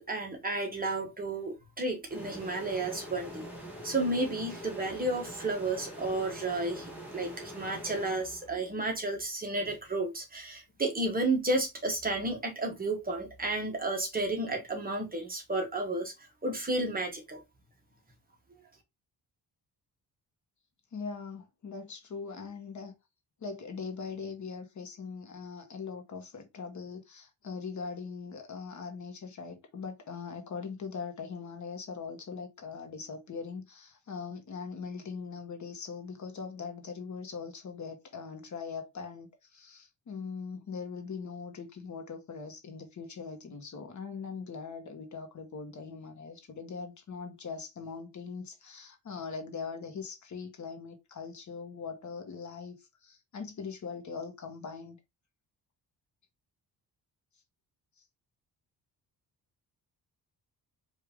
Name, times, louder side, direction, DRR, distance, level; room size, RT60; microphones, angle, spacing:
voice 1, 0.0-3.5 3.8-16.1 16.4-17.4, right 2 dB, 20° right, 1.2 m, -32 dB
sound 1, 2.1-8.8, equal, 5° right, 1.4 m, -44 dB
voice 2, 20.9-22.9 23.4-55.0 58.0-58.1, left 5 dB, 45° left, 1.2 m, -41 dB
4.9 x 2.7 x 3.5 m
cardioid pair, 140°, 39 cm